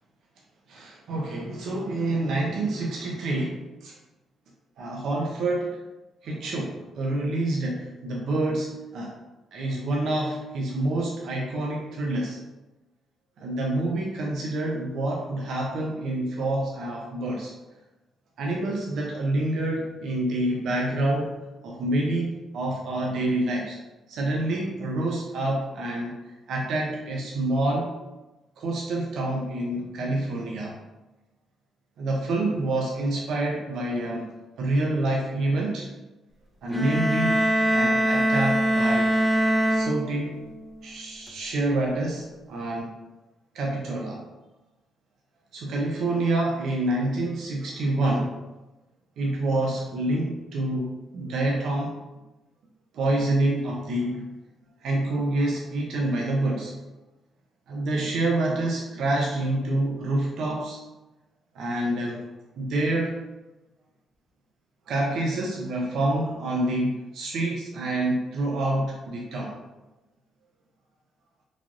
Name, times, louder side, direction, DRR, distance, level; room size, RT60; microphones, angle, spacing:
voice 1, 0.7-3.9 4.8-5.8 6.2-9.1 9.5-12.4 13.4-17.5 18.4-21.3 21.6-23.8 24.1-27.9 28.6-30.8 32.0-34.3 34.6-35.9 36.6-37.4 37.7-39.1 39.7-40.5 40.8-42.9 43.5-44.2 45.5-48.3 49.2-52.0 52.9-54.3 54.8-56.7 57.7-60.8 61.5-62.2 62.6-63.2 64.9-69.6, right 1 dB, 70° right, -2 dB, 0.5 m, -27 dB
sound 1, 36.7-40.5, right 1 dB, 5° left, 0.4 m, -23 dB
3.2 x 2.4 x 2.4 m, 1.1 s
cardioid pair, 90°, 0 cm